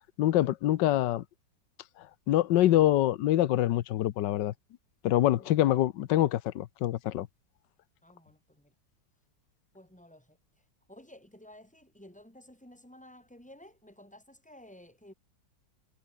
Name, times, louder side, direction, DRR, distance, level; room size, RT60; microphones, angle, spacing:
voice 1, 0.2-1.2 2.3-4.5 5.0-7.3, left 13 dB, 75° left, 1.4 m, -25 dB
voice 2, 8.0-8.7 9.7-15.1, left 1 dB, 5° left, 7.4 m, -54 dB
omnidirectional pair, 2.0 m